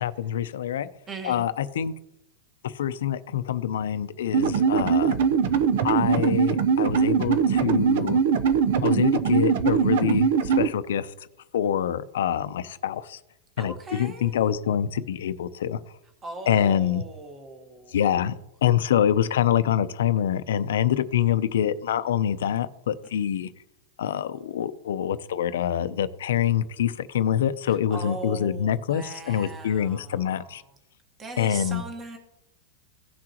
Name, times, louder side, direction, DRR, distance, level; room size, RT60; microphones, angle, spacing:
voice 1, 0.0-0.9 1.2-1.9 2.6-5.2 5.8-8.2 8.8-11.1 11.5-13.2 13.6-15.8 16.5-17.0 17.9-18.3 18.6-23.5 24.0-30.6 31.4-31.8, left 9 dB, 85° left, 12 dB, 0.6 m, -25 dB
voice 2, 1.1-1.5 13.6-14.4 16.2-18.0 27.7-30.6 31.2-32.2, right 2 dB, 15° right, 4 dB, 1.5 m, -39 dB
sound 1, 4.3-10.7, right 6 dB, 60° right, 0.7 m, -21 dB
16.5 x 6.3 x 3.0 m, 0.87 s
supercardioid pair, 160°, 0 cm